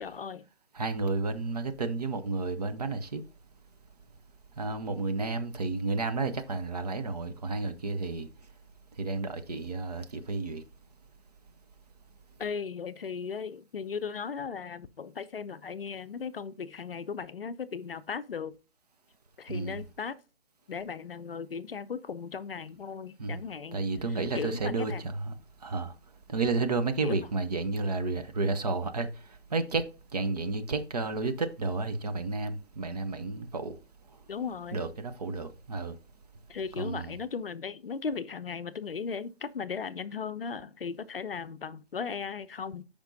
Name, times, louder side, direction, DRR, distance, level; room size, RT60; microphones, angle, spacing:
voice 1, 0.0-0.5 12.4-18.5 19.4-20.2 20.7-23.8 24.3-25.0 27.0-27.2 34.3-34.8 36.5-42.8, left 6 dB, 60° left, 0.6 m, -37 dB
voice 2, 0.7-3.2 4.6-8.3 9.0-10.6 19.5-19.9 23.2-23.4 23.7-25.3 25.6-25.9 26.3-29.9 30.1-33.8 34.7-36.0 36.7-37.2, right 3 dB, 35° right, 0.8 m, -31 dB
13.5 x 5.2 x 2.6 m
figure-of-eight pair, 155°, 33 cm